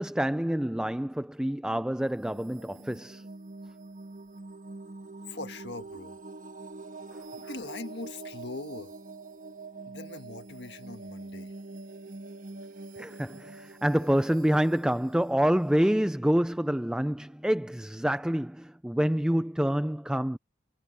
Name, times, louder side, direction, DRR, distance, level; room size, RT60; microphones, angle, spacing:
voice 1, 0.0-3.3 13.0-20.4, equal, 5° right, 0.3 m, -27 dB
sound 1, 2.0-16.7, right 3 dB, 45° right, 1.4 m, -45 dB
voice 2, 5.3-6.1 7.4-8.9 9.9-11.5, left 3 dB, 70° left, 1.7 m, -41 dB
head